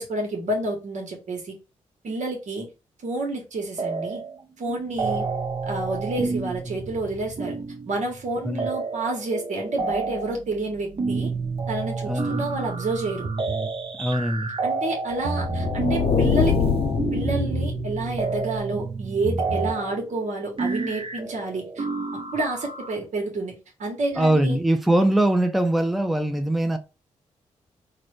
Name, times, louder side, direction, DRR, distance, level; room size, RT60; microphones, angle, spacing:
voice 1, 0.0-1.6 2.0-2.7 3.0-4.2 4.6-5.3 5.6-7.5 7.9-11.3 11.7-13.3 14.6-16.5 17.1-21.9 22.3-23.5 23.8-24.6, right 2 dB, 70° right, 1.1 m, -29 dB
sound 1, 3.8-4.4 4.7-22.9, right 4 dB, 45° right, 0.7 m, -30 dB
voice 2, 12.1-12.4 14.0-14.5 24.2-26.8, right 1 dB, ahead, 0.5 m, -22 dB
sound 2, 13.2-13.7 15.1-15.8 17.2-17.8 19.1-19.8, right 1 dB, 85° right, 0.7 m, -29 dB
sound 3, 15.3-18.2, left 5 dB, 50° left, 0.6 m, -24 dB
3.8 x 2.1 x 3.2 m
supercardioid pair, 50°, 13 cm